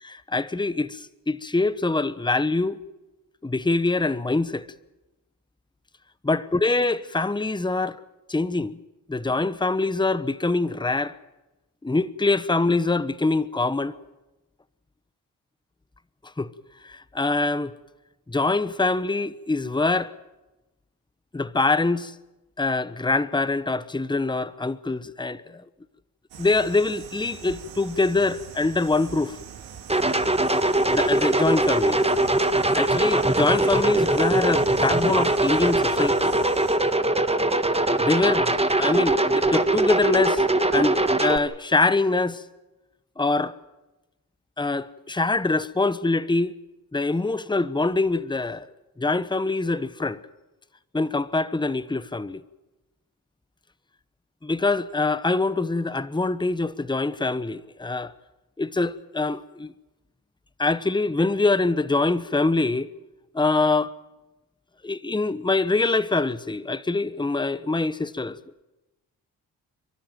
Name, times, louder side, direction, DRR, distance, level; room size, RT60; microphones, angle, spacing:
voice 1, 0.0-2.8 3.4-4.7 6.2-8.0 8.3-8.8 9.1-11.2 11.8-14.0 16.4-16.5 16.8-17.7 18.3-20.1 21.3-22.1 22.6-25.6 26.4-29.4 30.9-32.0 32.7-36.3 38.0-40.4 40.7-42.4 43.2-43.6 44.6-46.5 46.9-48.6 49.0-50.2 50.9-52.4 54.4-58.1 58.6-59.7 60.6-62.9 63.3-63.9 64.8-68.4, left 3 dB, 10° left, 1.0 m, -24 dB
sound 1, 26.3-36.8, right 8 dB, 85° right, 3.1 m, -42 dB
sound 2, 29.9-41.4, right 2 dB, 15° right, 1.7 m, -21 dB
29.5 x 12.5 x 9.1 m
supercardioid pair, 40°, 43 cm